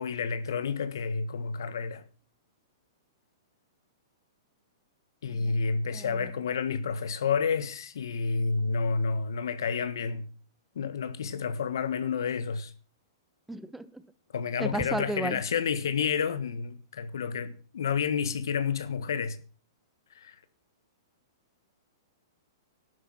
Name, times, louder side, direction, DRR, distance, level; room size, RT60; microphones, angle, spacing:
voice 1, 0.0-2.0 5.2-10.3 10.7-12.7 14.3-19.4 20.1-20.4, left 5 dB, 75° left, 1.4 m, -30 dB
voice 2, 5.9-6.3 13.5-13.9 14.6-15.4, right 1 dB, 5° right, 0.9 m, -33 dB
11.5 x 10.5 x 5.9 m
hypercardioid pair, 125°, 2 cm